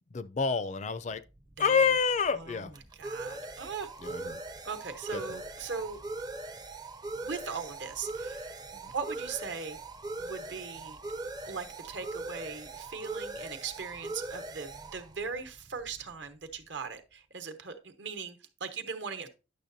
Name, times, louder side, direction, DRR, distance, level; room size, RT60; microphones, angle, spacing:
voice 1, 0.1-1.2 1.6-2.7 4.0-4.4 5.1-5.4 8.8-8.9, left 5 dB, 35° left, 0.4 m, -28 dB
sound 1, 1.1-16.5, right 2 dB, 20° right, 0.5 m, -41 dB
voice 2, 2.3-2.7 3.0-3.9 4.6-6.0 7.2-8.6 8.9-9.8 10.2-11.2 11.4-19.3, right 5 dB, 65° right, 1.1 m, -39 dB
10.0 x 6.6 x 2.6 m
head